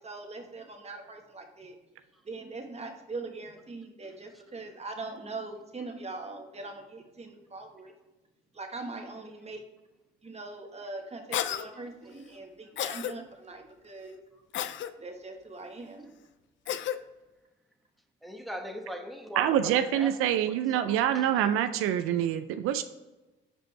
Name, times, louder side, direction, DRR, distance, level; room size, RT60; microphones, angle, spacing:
voice 1, 0.0-1.7 2.3-7.9 8.5-9.6 10.2-14.2 15.0-16.1, right 3 dB, 30° right, 3 dB, 1.3 m, -41 dB
Cough, 11.3-11.6 12.8-13.1 14.5-14.9 16.7-17.0, left 10 dB, 65° left, 0.5 m, -31 dB
voice 2, 18.2-20.1 20.4-21.3, equal, ahead, 3 dB, 1.0 m, -40 dB
voice 3, 19.4-22.8, right 10 dB, 85° right, 10 dB, 0.4 m, -26 dB
6.2 x 5.0 x 3.2 m, 1.1 s
supercardioid pair, 65°, 21 cm